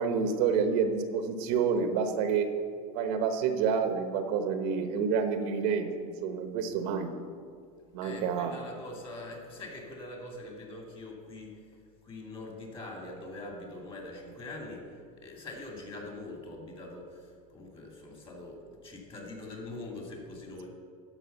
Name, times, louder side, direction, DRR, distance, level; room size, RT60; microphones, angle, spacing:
voice 1, 0.0-2.5 2.9-7.1 7.9-8.6, right 6 dB, 65° right, 7 dB, 1.1 m, -28 dB
voice 2, 8.0-20.7, left 2 dB, 25° left, 1 dB, 2.5 m, -43 dB
12.5 x 5.0 x 6.7 m, 2.2 s
supercardioid pair, 115°, 20 cm